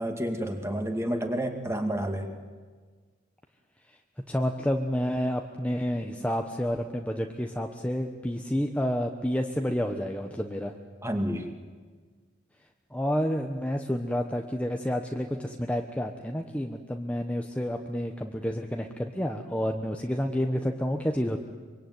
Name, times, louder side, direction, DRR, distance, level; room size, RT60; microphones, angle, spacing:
voice 1, 0.0-2.3 11.0-11.5, equal, 15° right, 5 dB, 2.4 m, -30 dB
voice 2, 4.3-10.7 12.9-21.4, equal, 5° left, 3 dB, 1.1 m, -29 dB
24.5 x 24.0 x 9.5 m, 1.5 s
head